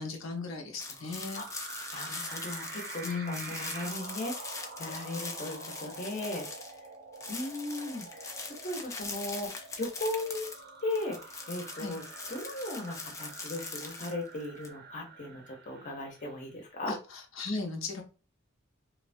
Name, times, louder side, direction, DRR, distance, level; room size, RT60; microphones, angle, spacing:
voice 1, 0.0-1.4 3.0-3.6 11.7-12.0 16.9-18.0, left 4 dB, 75° left, 2 dB, 0.7 m, -37 dB
sound 1, 0.8-6.9 7.1-14.7, left 3 dB, 15° left, 0.3 m, -42 dB
sound 2, 0.9-16.5, right 4 dB, 55° right, 0.5 m, -47 dB
voice 2, 1.9-6.5 7.3-10.5 10.8-12.0 12.3-17.0, left 2 dB, 40° left, 1 dB, 0.8 m, -37 dB
2.8 x 2.1 x 2.5 m, 0.33 s
head